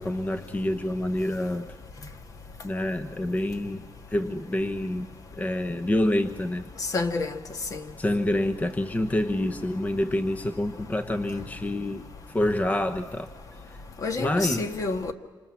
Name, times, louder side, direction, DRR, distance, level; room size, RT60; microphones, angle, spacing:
voice 1, 0.0-1.8 2.6-5.1 5.4-6.7 8.0-13.3 13.7-13.8 14.2-14.7, left 1 dB, 20° left, 0.9 m, -27 dB
voice 2, 6.9-7.3 7.7-7.8 14.0-15.1, left 3 dB, 50° left, 1.6 m, -28 dB
26.5 x 26.0 x 7.4 m
wide cardioid pair, 140°, 8 cm